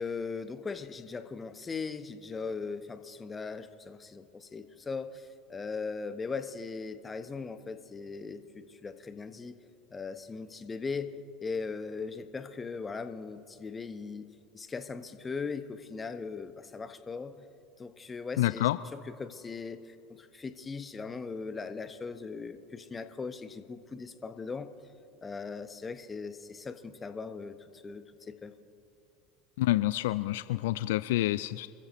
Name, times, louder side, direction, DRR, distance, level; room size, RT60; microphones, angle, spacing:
voice 1, 0.0-9.6 9.9-14.3 14.5-17.5 17.8-24.7 25.2-28.5, left 4 dB, 25° left, 10 dB, 1.1 m, -39 dB
voice 2, 18.4-18.8 29.6-31.7, left 16 dB, 70° left, 15 dB, 0.3 m, -28 dB
28.0 x 15.0 x 3.1 m, 2.6 s
hypercardioid pair, 75°, 0 cm